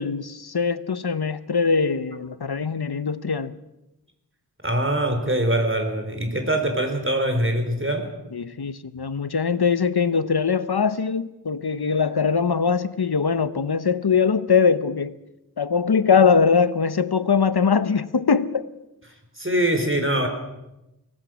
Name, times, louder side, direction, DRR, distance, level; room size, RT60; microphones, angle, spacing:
voice 1, 0.0-3.5 8.3-15.1 15.6-18.7, left 5 dB, 90° left, 0.9 m, -22 dB
voice 2, 4.6-8.0 19.4-20.3, right 1 dB, 35° right, 4.2 m, -23 dB
24.5 x 18.5 x 6.3 m
wide cardioid pair, 45°, 37 cm